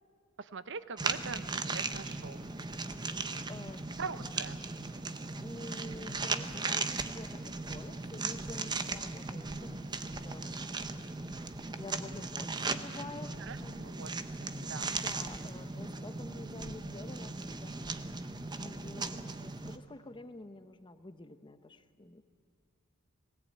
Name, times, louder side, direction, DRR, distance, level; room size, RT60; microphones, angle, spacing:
voice 1, 0.4-2.4 4.0-4.6 13.4-14.1 14.4-15.0, right 5 dB, 55° right, 14 dB, 0.8 m, -43 dB
sound 1, 1.0-19.8, right 3 dB, 20° right, 0.8 m, -37 dB
voice 2, 3.5-3.9 5.4-11.3 11.8-13.9 14.9-22.2, left 2 dB, 20° left, 10 dB, 0.9 m, -49 dB
20.0 x 17.0 x 8.6 m, 2.5 s
head